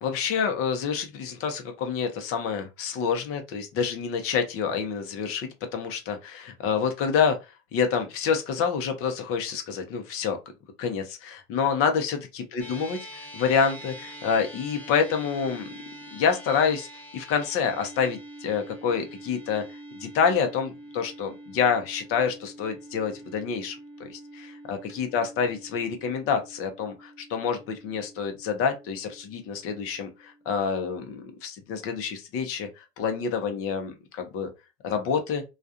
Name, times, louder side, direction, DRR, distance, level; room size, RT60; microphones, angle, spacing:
voice 1, 0.0-7.4 7.7-10.4 10.8-13.0 13.3-15.7 16.1-16.9 17.1-19.6 19.9-34.5 34.8-35.4, left 6 dB, 35° left, 0.7 m, -27 dB
sound 1, 12.6-31.1, right 1 dB, 5° left, 0.5 m, -45 dB
2.4 x 2.3 x 2.6 m
supercardioid pair, 120°, 38 cm